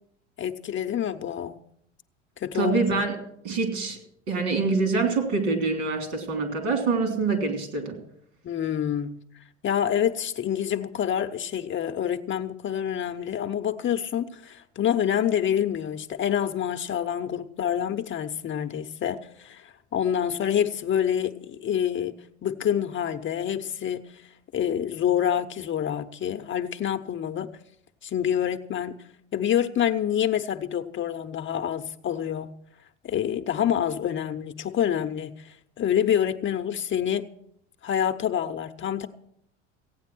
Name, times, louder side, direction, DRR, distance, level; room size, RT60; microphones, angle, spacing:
voice 1, 0.4-1.6 2.4-2.8 8.4-9.2 9.6-22.2 22.4-24.0 24.5-27.5 28.0-29.0 29.3-32.5 33.0-37.3 37.8-39.1, left 9 dB, 30° left, 6 dB, 0.8 m, -27 dB
voice 2, 2.5-3.2 3.4-4.0 4.3-8.0, right 4 dB, 70° right, 5 dB, 3.3 m, -25 dB
16.0 x 8.9 x 6.1 m, 0.72 s
hypercardioid pair, 75°, 36 cm